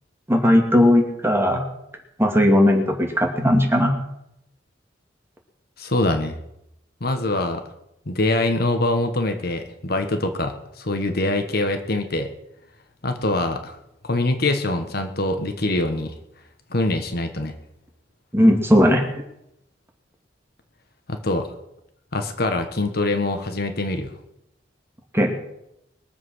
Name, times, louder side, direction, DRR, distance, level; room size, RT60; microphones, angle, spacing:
voice 1, 0.3-1.6 2.2-3.9 18.3-19.0 25.1-25.3, left 1 dB, 15° right, 2 dB, 2.4 m, -17 dB
voice 2, 5.8-6.3 7.0-7.6 8.1-12.3 13.0-13.8 14.0-16.2 16.7-17.5 21.1-21.5 22.1-24.1, left 2 dB, 55° left, 7 dB, 1.5 m, -24 dB
22.0 x 7.7 x 6.4 m, 0.83 s
head